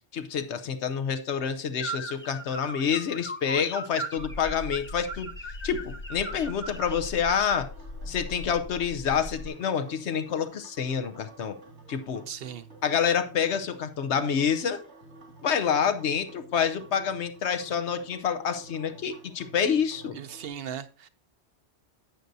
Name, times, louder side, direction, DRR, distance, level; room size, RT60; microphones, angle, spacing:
voice 1, 0.1-5.3 5.6-7.7 8.1-11.6 11.9-12.3 12.8-14.8 15.4-20.2, left 7 dB, 75° left, 1.1 m, -27 dB
sound 1, 1.7-7.1, right 2 dB, 15° left, 0.7 m, -39 dB
sound 2, 4.2-9.5, left 2 dB, 50° left, 0.8 m, -40 dB
sound 3, 6.3-20.5, right 2 dB, 90° right, 2.8 m, -51 dB
voice 2, 12.3-12.7 20.1-21.1, right 8 dB, 65° right, 0.8 m, -38 dB
11.5 x 7.8 x 2.7 m
omnidirectional pair, 1.2 m